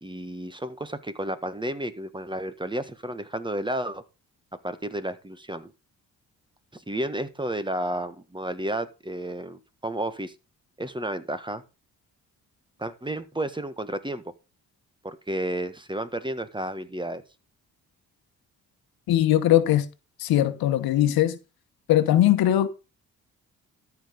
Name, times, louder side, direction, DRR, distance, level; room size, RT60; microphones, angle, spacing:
voice 1, 0.0-4.0 4.6-5.7 6.7-10.3 10.8-11.6 12.8-14.2 15.0-17.2, right 1 dB, 15° right, 1.5 m, -32 dB
voice 2, 19.1-19.8 20.2-21.4 21.9-22.7, left 12 dB, 85° left, 1.2 m, -20 dB
13.0 x 5.0 x 5.2 m
supercardioid pair, 65°, 35 cm